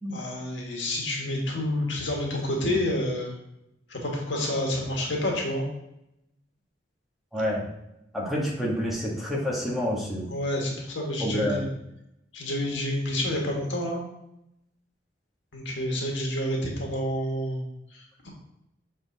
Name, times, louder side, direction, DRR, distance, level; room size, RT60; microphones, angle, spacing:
voice 1, 0.1-3.3 3.9-5.6 10.3-11.7 12.3-14.1 15.5-17.6 17.9-18.3, left 1 dB, 80° left, -1 dB, 1.8 m, -29 dB
voice 2, 7.3-7.7 8.1-10.3 11.2-11.6, left 1 dB, ahead, -6 dB, 1.7 m, -28 dB
6.5 x 4.3 x 4.2 m, 0.83 s
head